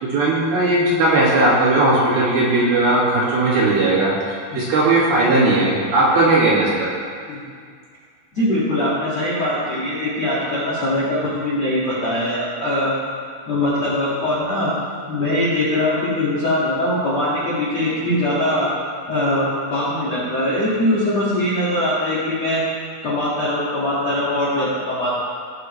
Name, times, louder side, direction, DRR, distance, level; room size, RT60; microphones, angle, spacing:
voice 1, 0.0-4.1 4.5-6.9, right 2 dB, 60° right, -7 dB, 3.3 m, -17 dB
voice 2, 8.3-12.9 13.5-14.7 15.1-18.7 19.1-22.6 23.0-25.2, left 1 dB, 55° left, -9 dB, 1.9 m, -21 dB
20.0 x 7.8 x 3.1 m, 2.1 s
omnidirectional pair, 6.0 m